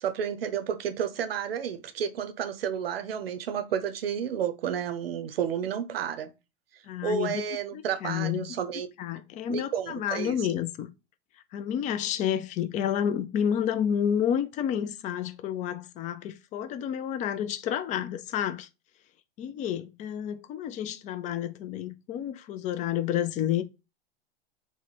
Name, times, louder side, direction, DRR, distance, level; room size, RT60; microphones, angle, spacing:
voice 1, 0.0-6.3 7.0-8.9 9.5-10.4, right 8 dB, 80° right, 0.7 m, -31 dB
voice 2, 6.9-7.4 7.7-8.6 9.0-10.9 11.5-18.7 19.4-23.6, left 9 dB, 25° left, 0.3 m, -30 dB
3.1 x 2.1 x 4.0 m
hypercardioid pair, 100°, 29 cm